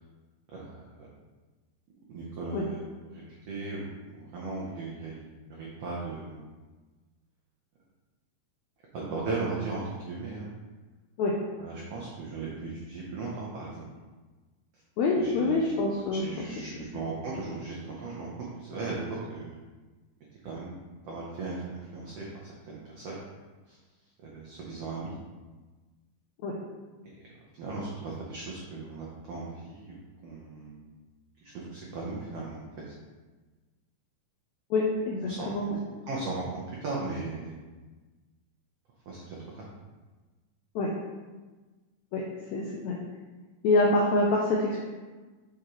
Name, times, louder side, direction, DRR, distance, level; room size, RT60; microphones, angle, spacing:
voice 1, 0.5-1.1 2.1-5.2 5.6-6.4 8.9-10.4 11.6-13.9 15.2-15.7 16.1-18.3 18.6-19.6 20.4-20.7 21.0-23.2 23.7-23.8 24.2-25.1 27.0-27.1 27.6-30.9 31.4-32.9 35.3-35.7 36.1-37.5 39.1-39.7, right 3 dB, 80° right, -5 dB, 1.3 m, -37 dB
voice 2, 15.0-16.4 26.4-26.5 34.7-35.8 40.7-40.9 42.1-42.2 42.5-42.9 43.6-44.8, left 2 dB, 90° left, -1 dB, 1.6 m, -26 dB
7.2 x 4.8 x 3.1 m, 1.3 s
omnidirectional pair, 4.0 m